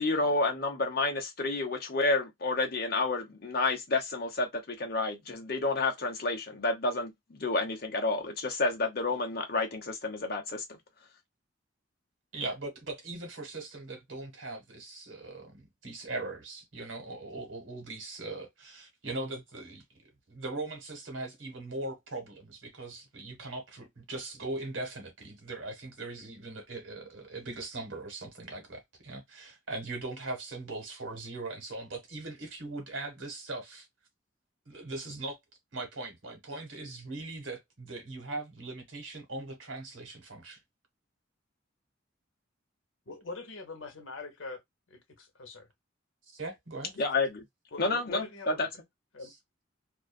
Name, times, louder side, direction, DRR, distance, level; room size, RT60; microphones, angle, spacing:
voice 1, 0.0-10.8 47.0-47.4 47.8-48.7, left 3 dB, 50° left, 0.9 m, -30 dB
voice 2, 12.3-33.9 34.6-35.4 35.7-40.6 46.3-46.9 49.2-49.3, right 2 dB, 80° right, 1.3 m, -40 dB
voice 3, 43.1-44.6 44.9-45.7 47.7-48.7 49.1-49.3, left 3 dB, 80° left, 0.9 m, -42 dB
2.6 x 2.4 x 2.3 m
head